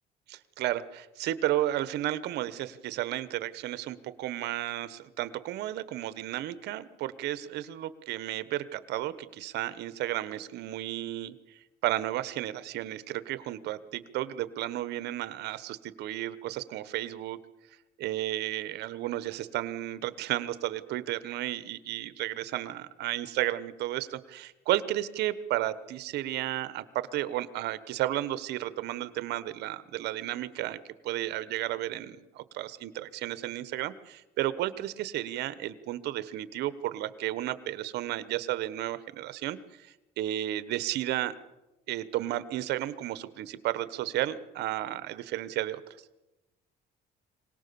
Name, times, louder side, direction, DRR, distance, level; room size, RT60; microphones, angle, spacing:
voice 1, 0.3-11.4 11.8-17.4 18.0-41.3 41.9-45.8, right 14 dB, 80° right, 14 dB, 1.3 m, -33 dB
25.0 x 18.5 x 7.0 m, 1.0 s
cardioid pair, 110°, 17 cm